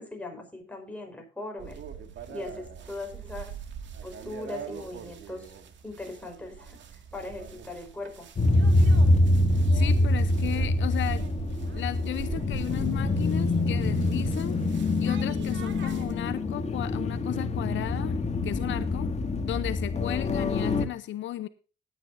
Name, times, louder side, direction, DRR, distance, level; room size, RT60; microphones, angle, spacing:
voice 1, 0.0-1.8 2.3-3.6 4.0-5.5 5.8-8.3, left 2 dB, 5° left, 2 dB, 5.1 m, -39 dB
sound 1, 1.6-16.1, right 8 dB, 70° right, 2.1 m, -41 dB
sound 2, 8.4-20.9, left 2 dB, 35° left, 2.1 m, -25 dB
voice 2, 9.7-11.3 11.7-14.6 15.0-19.1 19.4-21.5, left 13 dB, 75° left, 14 dB, 0.8 m, -34 dB
17.5 x 9.5 x 2.7 m, 0.35 s
cardioid pair, 90°, 20 cm